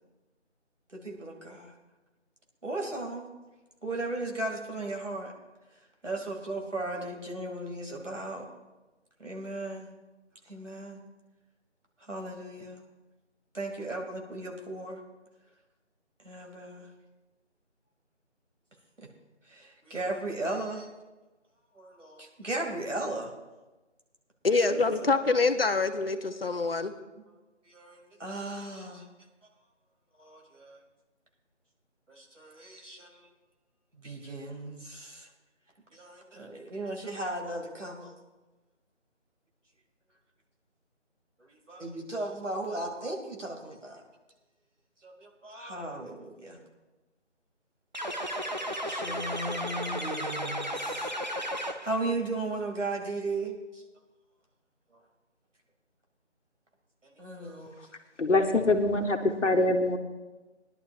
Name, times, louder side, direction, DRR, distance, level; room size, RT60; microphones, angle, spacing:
voice 1, 0.9-1.7 2.6-3.3 3.8-5.3 6.0-8.4 9.2-9.9 10.5-11.0 12.1-12.8 13.5-15.0 16.2-16.9 19.5-20.9 21.8-23.3 24.7-25.1 27.7-29.0 30.2-30.8 32.1-33.2 34.0-35.3 35.9-38.1 41.7-44.0 45.0-46.6 48.1-51.1 51.6-53.8 57.2-57.8, right 2 dB, 80° right, 1 dB, 2.4 m, -36 dB
voice 2, 24.4-26.9, left 3 dB, 55° left, 9 dB, 0.8 m, -25 dB
sound 1, 47.9-52.1, equal, 40° right, 0.5 m, -34 dB
voice 3, 58.2-60.0, left 2 dB, 75° left, 4 dB, 1.3 m, -24 dB
19.5 x 11.0 x 2.4 m, 1.1 s
figure-of-eight pair, 165°, 36 cm